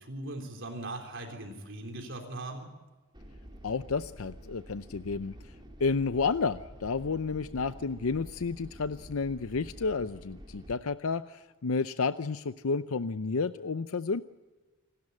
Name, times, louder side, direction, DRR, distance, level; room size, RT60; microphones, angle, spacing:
voice 1, 0.0-2.7, right 2 dB, 60° right, 3 dB, 3.6 m, -39 dB
sound 1, 3.1-10.7, equal, 20° right, 3.3 m, -48 dB
voice 2, 3.6-5.5 5.8-14.2, left 4 dB, 75° left, 12 dB, 0.6 m, -31 dB
27.5 x 13.0 x 9.8 m, 1.2 s
head